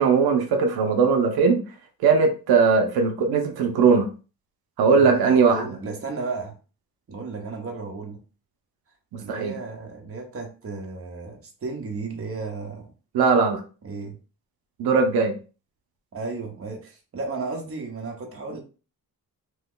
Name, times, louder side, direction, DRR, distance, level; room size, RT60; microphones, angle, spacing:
voice 1, 0.0-1.6 2.0-4.1 4.8-5.6 9.3-9.6 13.1-13.6 14.8-15.4, right 5 dB, 90° right, 3 dB, 0.7 m, -19 dB
voice 2, 5.0-6.6 7.1-8.2 9.2-12.9 13.8-14.2 16.1-18.6, right 4 dB, 40° right, 1 dB, 0.9 m, -34 dB
3.0 x 2.2 x 3.7 m, 0.34 s
cardioid pair, 115°, 36 cm